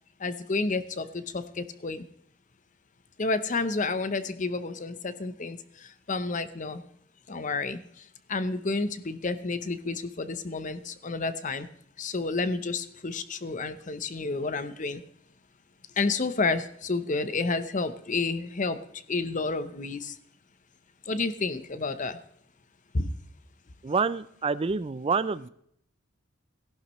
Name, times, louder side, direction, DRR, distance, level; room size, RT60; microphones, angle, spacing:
voice 1, 0.2-2.0 3.2-5.6 6.1-6.8 7.3-7.8 8.3-11.7 12.0-15.0 16.0-18.8 19.1-20.1 21.1-22.2 22.9-23.1, left 3 dB, 35° left, 12 dB, 0.7 m, -30 dB
voice 2, 23.8-25.5, right 4 dB, 25° right, 16 dB, 0.4 m, -27 dB
18.0 x 11.5 x 3.1 m, 0.70 s
head